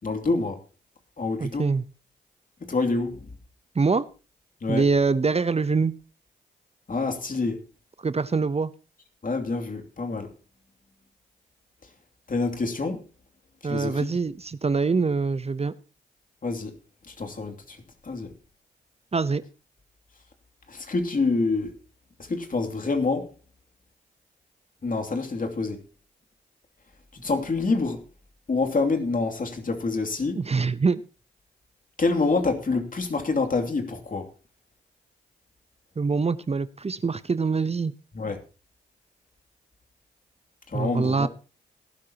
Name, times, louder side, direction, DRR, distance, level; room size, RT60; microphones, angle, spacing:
voice 1, 0.0-0.6 1.2-1.7 2.6-3.3 4.6-4.9 6.9-7.6 9.2-10.3 12.3-13.0 13.6-14.1 16.4-16.8 17.0-18.3 20.7-21.7 22.2-23.3 24.8-25.8 27.1-28.0 28.5-30.4 32.0-34.3 38.1-38.4 40.7-41.3, left 3 dB, 45° left, 2.8 m, -27 dB
voice 2, 1.4-1.8 3.8-4.1 4.7-5.9 8.0-8.7 13.6-15.7 19.1-19.4 30.3-31.0 36.0-37.9 40.7-41.3, right 4 dB, 35° right, 0.8 m, -24 dB
18.0 x 11.5 x 2.9 m
supercardioid pair, 45°, 19 cm